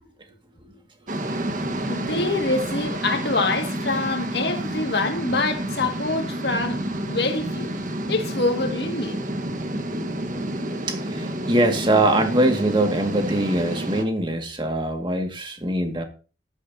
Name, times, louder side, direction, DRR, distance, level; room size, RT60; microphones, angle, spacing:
sound 1, 1.1-14.0, right 1 dB, 45° right, 1.5 m, -29 dB
voice 1, 1.9-7.7 8.1-9.2, left 3 dB, 60° left, 2.2 m, -25 dB
voice 2, 10.9-16.0, right 1 dB, 25° right, 2.1 m, -22 dB
15.0 x 13.0 x 2.9 m
head